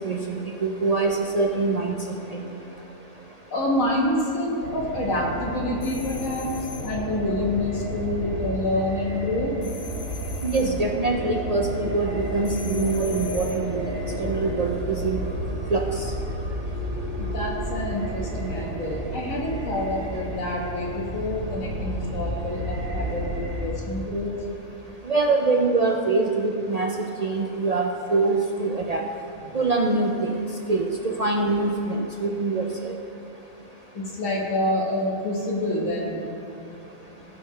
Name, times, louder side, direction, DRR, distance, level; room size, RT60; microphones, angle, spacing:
voice 1, 0.1-2.0 10.4-13.8 14.2-15.2 15.7-16.1 25.0-29.0 29.5-30.3 30.7-32.9, right 3 dB, 65° right, 1 dB, 0.4 m, -24 dB
voice 2, 3.5-6.5 6.8-9.5 17.2-24.3 33.9-36.2, left 1 dB, 75° left, -3 dB, 1.9 m, -27 dB
sound 1, 4.6-23.7, equal, 45° right, 1.2 m, -32 dB
sound 2, 5.8-7.0 9.6-10.8 12.4-13.7, left 5 dB, 60° left, 1.0 m, -41 dB
16.0 x 5.6 x 3.3 m, 2.6 s
omnidirectional pair, 1.4 m